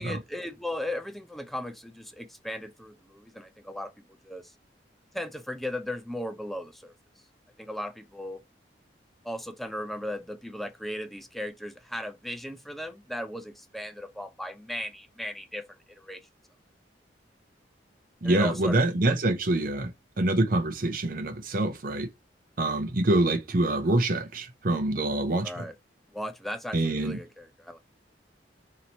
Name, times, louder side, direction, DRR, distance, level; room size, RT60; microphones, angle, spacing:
voice 1, 0.0-3.9 4.2-4.4 5.1-6.9 7.6-8.4 9.2-15.7 16.0-16.2 18.2-19.2 25.4-25.7 26.1-27.8, left 1 dB, ahead, 0.4 m, -37 dB
voice 2, 18.2-19.9 20.2-22.1 22.6-25.6 26.7-27.2, right 2 dB, 50° right, 0.7 m, -25 dB
3.0 x 2.8 x 4.0 m
head